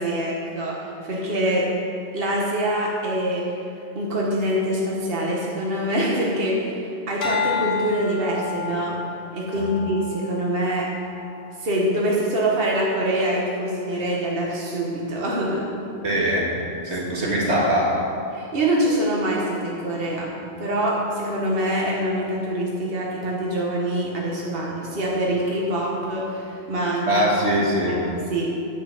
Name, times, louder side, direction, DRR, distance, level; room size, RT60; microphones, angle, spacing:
voice 1, 0.0-1.7 2.1-3.4 3.9-9.0 9.3-10.9 11.6-15.6 18.3-20.3 20.6-27.2 27.9-28.5, right 1 dB, 60° right, -3 dB, 1.6 m, -25 dB
sound 1, 7.2-11.7 12.2-12.6, left 7 dB, 65° left, 1.2 m, -31 dB
voice 2, 16.0-16.5 16.8-18.0 27.1-28.0, equal, 90° right, -4 dB, 2.2 m, -22 dB
9.9 x 6.2 x 7.0 m, 2.7 s
omnidirectional pair, 1.1 m